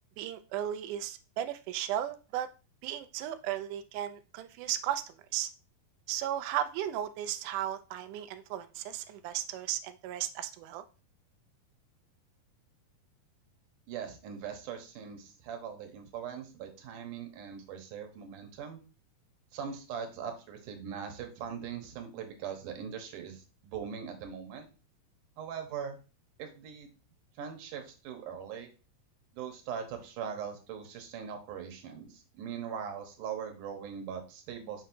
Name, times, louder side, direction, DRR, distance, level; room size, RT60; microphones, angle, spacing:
voice 1, 0.2-2.5 2.8-5.0 5.3-5.5 6.1-10.8, right 11 dB, 90° right, 9 dB, 1.8 m, -35 dB
voice 2, 13.9-18.8 19.5-24.7 25.4-26.0 26.4-26.9 27.4-28.7 29.3-34.8, right 7 dB, 70° right, 4 dB, 2.4 m, -41 dB
6.3 x 5.9 x 2.6 m, 0.33 s
omnidirectional pair, 4.2 m